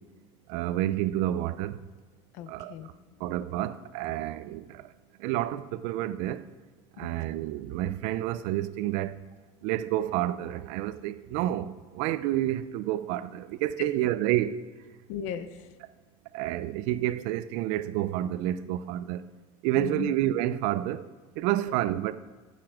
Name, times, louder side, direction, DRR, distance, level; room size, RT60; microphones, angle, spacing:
voice 1, 0.5-1.8 2.5-2.7 3.2-4.6 5.2-6.4 7.0-9.2 9.6-14.6 16.3-19.2 19.6-21.0 21.4-22.1, right 13 dB, 60° right, 0.5 m, -29 dB
voice 2, 2.3-3.2 7.0-7.1 13.8-13.9 15.1-15.7 19.8-20.1 21.6-21.8, left 9 dB, 60° left, 0.8 m, -37 dB
12.0 x 6.8 x 4.9 m
cardioid pair, 175°, 13 cm